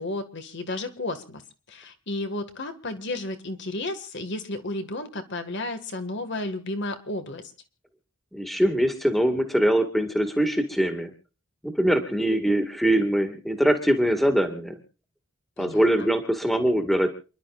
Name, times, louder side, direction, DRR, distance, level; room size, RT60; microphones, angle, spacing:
voice 1, 0.0-1.4 1.7-7.4 15.6-16.1, left 2 dB, 55° left, 8 dB, 1.9 m, -32 dB
voice 2, 8.3-11.1 11.6-14.8 15.6-17.1, right 1 dB, ahead, 6 dB, 2.0 m, -23 dB
29.0 x 11.5 x 2.5 m, 0.36 s
head